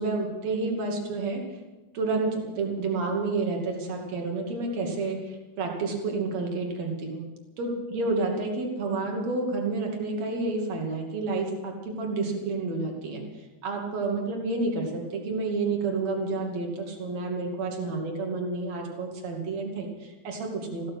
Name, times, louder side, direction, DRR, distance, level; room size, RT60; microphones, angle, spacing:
voice 1, 0.0-1.4 1.9-7.2 7.6-13.2 13.6-20.9, right 3 dB, 45° right, 1 dB, 3.1 m, -30 dB
15.5 x 15.0 x 6.3 m, 1.1 s
omnidirectional pair, 5.1 m